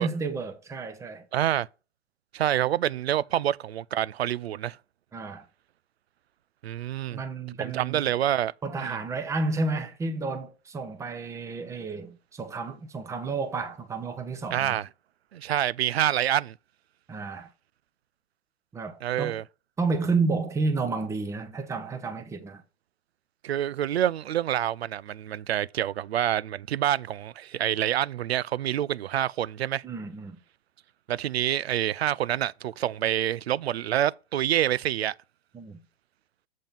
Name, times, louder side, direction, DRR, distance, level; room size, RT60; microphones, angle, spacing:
voice 1, 0.0-1.2 5.1-5.4 7.1-8.1 8.6-14.8 17.1-17.5 18.7-19.4 19.8-22.6 29.8-30.4 35.5-35.8, right 3 dB, 10° right, 0.8 m, -31 dB
voice 2, 1.3-1.7 2.3-4.8 6.6-7.2 7.6-8.5 8.8-8.9 14.5-14.9 15.3-16.5 19.0-19.4 23.4-29.8 31.1-35.1, right 11 dB, 65° right, 0.5 m, -27 dB
7.4 x 3.7 x 5.7 m
figure-of-eight pair, 120°, 33 cm